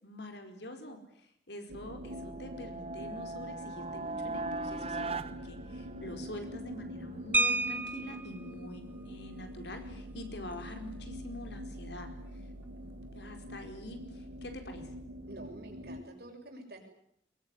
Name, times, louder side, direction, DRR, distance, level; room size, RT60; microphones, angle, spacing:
voice 1, 0.0-12.4 12.8-14.9, left 1 dB, 75° left, 6 dB, 4.7 m, -46 dB
sound 1, 1.7-16.0, equal, 85° right, 2.1 m, -45 dB
sound 2, 2.0-6.4, right 3 dB, 35° right, 1.2 m, -39 dB
sound 3, 7.3-8.4 9.9-10.0 10.3-10.5 10.9-11.2, right 2 dB, 10° right, 1.0 m, -30 dB
voice 2, 15.3-16.9, right 1 dB, 60° right, 3 dB, 6.8 m, -48 dB
22.5 x 22.0 x 9.9 m, 0.73 s
head